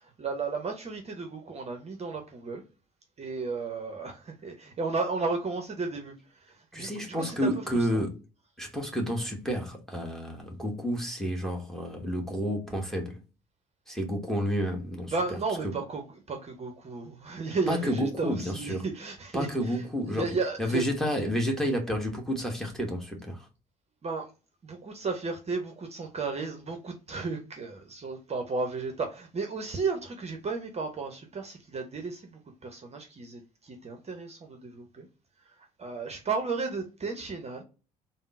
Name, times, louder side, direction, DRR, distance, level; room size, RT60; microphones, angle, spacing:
voice 1, 0.2-2.6 3.2-6.1 6.5-7.5 15.1-16.0 16.3-20.8 24.0-24.3 24.6-35.1 35.8-37.6, right 4 dB, 35° right, 0.7 m, -34 dB
voice 2, 6.7-8.2 8.6-13.2 13.9-15.4 17.7-18.8 19.3-23.5, equal, ahead, 1.1 m, -30 dB
3.5 x 2.0 x 2.5 m
figure-of-eight pair, 50°, 20 cm